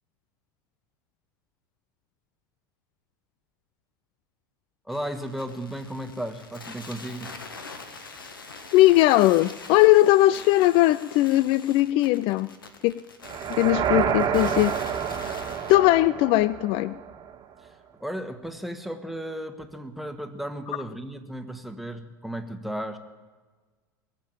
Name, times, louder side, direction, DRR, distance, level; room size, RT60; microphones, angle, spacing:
voice 1, 4.8-7.4 17.6-23.0, right 1 dB, ahead, 7 dB, 1.5 m, -35 dB
sound 1, 4.9-15.8, left 4 dB, 85° left, 1.6 m, -44 dB
voice 2, 8.7-12.5 12.8-12.9 13.5-14.7 15.7-16.9, left 16 dB, 50° left, 18 dB, 0.4 m, -19 dB
sound 2, 13.2-17.3, right 8 dB, 40° right, 1.5 m, -28 dB
21.0 x 7.5 x 9.1 m, 1.4 s
figure-of-eight pair, 75°, 11 cm